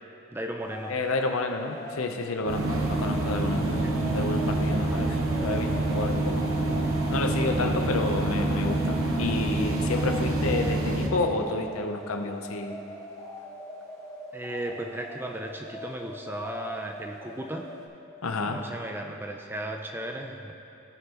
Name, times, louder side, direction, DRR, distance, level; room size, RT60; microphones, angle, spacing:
voice 1, 0.3-0.9 3.8-3.9 14.3-17.7 18.5-20.5, right 1 dB, 10° right, 3 dB, 0.4 m, -35 dB
sound 1, 0.6-17.9, equal, 10° left, 0.9 m, -42 dB
voice 2, 0.9-3.8 4.1-6.4 7.1-12.8 18.2-18.6, left 3 dB, 80° left, 5 dB, 0.7 m, -30 dB
sound 2, 2.5-11.1, right 2 dB, 75° right, 0.9 m, -26 dB
16.0 x 5.5 x 3.0 m, 2.7 s
head